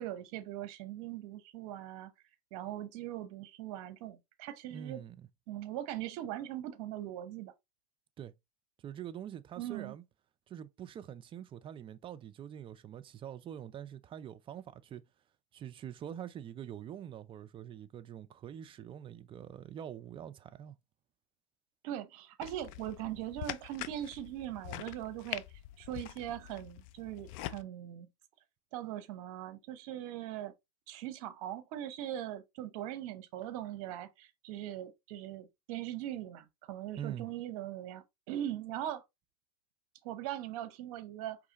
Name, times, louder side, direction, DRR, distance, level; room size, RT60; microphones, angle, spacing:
voice 1, 0.0-2.1 2.5-5.0 5.5-7.5 9.6-10.0 21.8-25.4 25.8-28.1 28.7-30.5 30.9-39.0 40.0-41.4, right 12 dB, 65° right, 0.9 m, -40 dB
voice 2, 4.7-5.3 8.2-8.3 8.8-10.0 10.5-15.0 15.5-20.8 37.0-37.3, right 10 dB, 25° right, 0.5 m, -45 dB
sound 1, 22.4-27.6, left 14 dB, 55° left, 0.5 m, -44 dB
4.8 x 3.2 x 2.9 m
hypercardioid pair, 115°, 20 cm